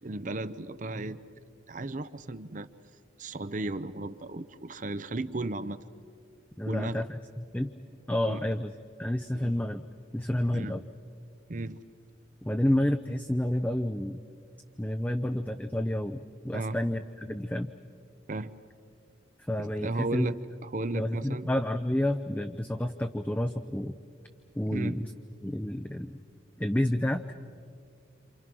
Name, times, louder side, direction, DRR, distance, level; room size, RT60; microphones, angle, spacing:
voice 1, 0.0-1.2 1.7-2.7 3.2-5.8 6.7-7.0 8.3-8.5 9.3-9.5 10.5-10.7 11.5-11.9 16.5-16.8 18.3-18.5 19.6-21.5 24.7-25.0, right 2 dB, 40° right, 12 dB, 0.7 m, -35 dB
voice 2, 6.6-7.7 8.1-8.7 9.0-9.8 10.1-10.8 12.4-14.2 14.8-17.7 19.5-20.3 20.9-24.0 24.6-25.1 25.4-26.2 26.6-27.2, left 1 dB, 10° left, 6 dB, 0.5 m, -29 dB
28.0 x 28.0 x 6.1 m, 2.3 s
head